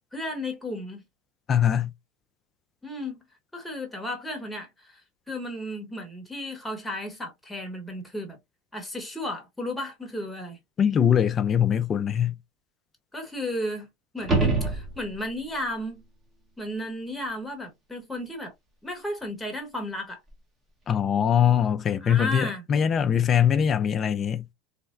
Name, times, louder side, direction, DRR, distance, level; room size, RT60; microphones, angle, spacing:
voice 1, 0.1-1.0 2.8-3.2 3.5-5.0 5.3-8.4 8.7-10.6 13.1-13.9 14.1-16.0 16.6-18.5 18.8-20.2 22.0-22.6, left 1 dB, 5° left, 1.1 m, -34 dB
voice 2, 1.5-1.9 10.8-12.3 20.9-24.4, left 8 dB, 30° left, 0.4 m, -22 dB
sound 1, 14.2-15.4 20.3-20.4, right 3 dB, 25° right, 1.1 m, -25 dB
3.2 x 2.2 x 2.4 m
supercardioid pair, 110°, 0 cm